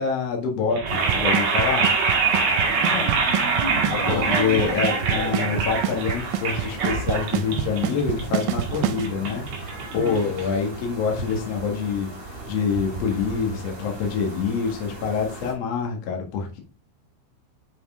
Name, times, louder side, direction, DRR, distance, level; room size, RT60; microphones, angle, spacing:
voice 1, 0.0-1.9 3.9-9.5 9.9-16.6, left 6 dB, 90° left, 1 dB, 1.4 m, -26 dB
sound 1, 0.7-10.8, right 4 dB, 55° right, 1.9 m, -25 dB
sound 2, 0.8-15.5, right 2 dB, 20° right, 3.1 m, -37 dB
Drum kit / Snare drum / Bass drum, 1.1-9.1, right 10 dB, 85° right, 3.1 m, -26 dB
voice 2, 2.8-3.7 10.0-10.4, left 2 dB, 60° left, 1 dB, 3.3 m, -34 dB
7.7 x 5.4 x 3.6 m, 0.35 s
omnidirectional pair, 5.6 m